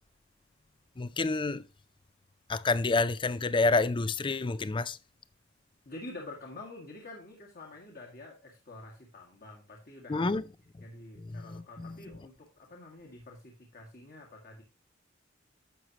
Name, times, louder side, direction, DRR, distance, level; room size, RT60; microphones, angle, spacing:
voice 1, 1.0-1.6 2.5-5.0 10.1-10.4 11.3-12.0, left 3 dB, 25° left, 0.4 m, -28 dB
voice 2, 5.9-10.3 10.8-14.6, left 2 dB, 45° left, 1.8 m, -47 dB
11.0 x 7.5 x 2.9 m
head